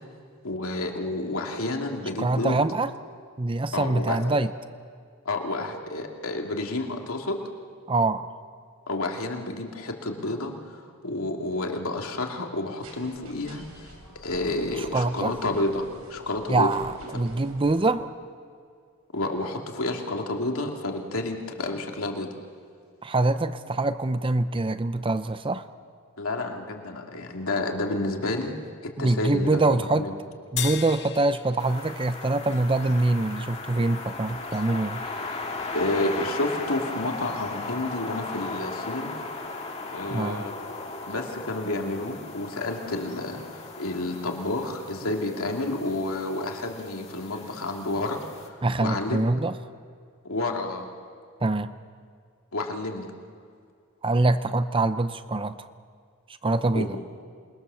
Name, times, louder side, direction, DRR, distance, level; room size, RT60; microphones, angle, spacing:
voice 1, 0.4-2.6 3.7-4.2 5.2-7.4 8.9-13.9 14.2-16.7 19.1-22.3 26.2-28.5 28.8-30.1 35.7-39.1 39.9-40.5 41.1-48.2 48.8-49.3 50.2-50.9 52.5-53.1 56.7-56.9, left 2 dB, 70° left, 2 dB, 2.6 m, -30 dB
voice 2, 2.2-2.9 3.4-4.5 7.9-8.3 14.8-15.3 16.5-18.1 23.0-25.6 29.0-30.1 30.5-35.0 40.1-40.5 48.6-49.6 51.4-51.7 54.0-55.7 56.4-57.0, right 2 dB, 25° right, 12 dB, 0.6 m, -24 dB
sound 1, 12.8-17.8, right 1 dB, 85° right, 4.9 m, -48 dB
sound 2, 30.6-33.1, left 11 dB, 50° left, 0.8 m, -36 dB
sound 3, 31.6-48.5, left 3 dB, 30° left, 2.2 m, -37 dB
27.5 x 21.5 x 7.0 m, 2.2 s
head